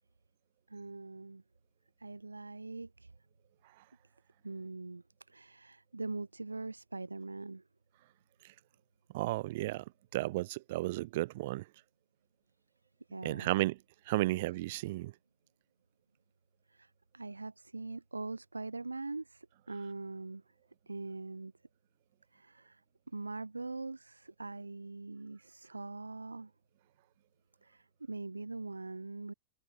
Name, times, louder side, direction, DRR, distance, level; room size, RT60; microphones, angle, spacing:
voice 1, 0.7-1.4 2.0-3.1 4.4-7.6 13.1-13.5 16.7-20.5 20.9-21.5 22.3-22.8 23.1-26.5 27.6-29.3, right 3 dB, 85° right, 3.6 m, -42 dB
voice 2, 9.1-9.8 10.1-11.6 13.2-13.8 14.1-15.1, right 18 dB, 55° right, 0.4 m, -33 dB
figure-of-eight pair, 90°, 0 cm